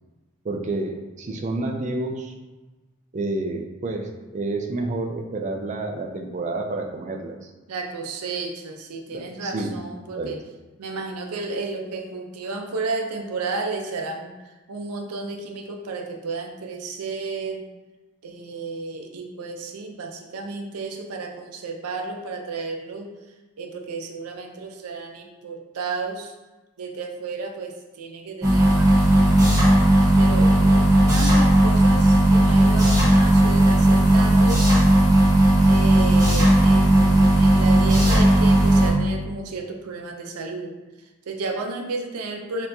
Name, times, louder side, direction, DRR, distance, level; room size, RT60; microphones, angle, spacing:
voice 1, 0.4-2.3 3.1-7.5 9.1-9.7 10.2-10.3, right 2 dB, 35° right, 3 dB, 0.4 m, -29 dB
voice 2, 7.7-10.4 10.8-17.7 18.2-23.1 23.6-26.3 26.8-29.5 30.2-34.8 35.7-40.7 41.0-42.7, right 3 dB, 90° right, 3 dB, 0.5 m, -32 dB
sound 1, 28.4-38.9, right 1 dB, 15° right, 1.0 m, -16 dB
4.2 x 2.9 x 2.6 m, 1.2 s
head